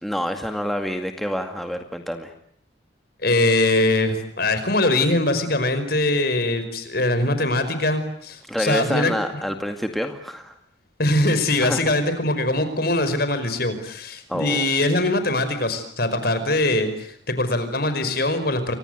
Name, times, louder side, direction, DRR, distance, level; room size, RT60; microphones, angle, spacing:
voice 1, 0.0-2.3 8.5-10.5 11.6-11.8 14.3-14.6, equal, ahead, 4 dB, 2.1 m, -27 dB
voice 2, 3.2-9.1 11.0-18.8, left 2 dB, 50° left, 10 dB, 5.3 m, -22 dB
29.5 x 25.0 x 8.0 m, 0.65 s
head